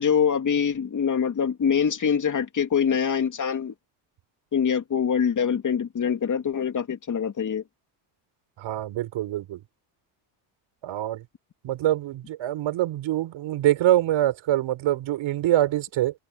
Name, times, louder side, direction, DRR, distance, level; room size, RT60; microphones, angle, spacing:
voice 1, 0.0-3.7 4.5-7.6, left 7 dB, 35° left, 3.0 m, -24 dB
voice 2, 8.6-9.6 10.8-11.2 11.6-16.1, right 13 dB, 65° right, 5.3 m, -24 dB
open air
cardioid pair, 100°, 50 cm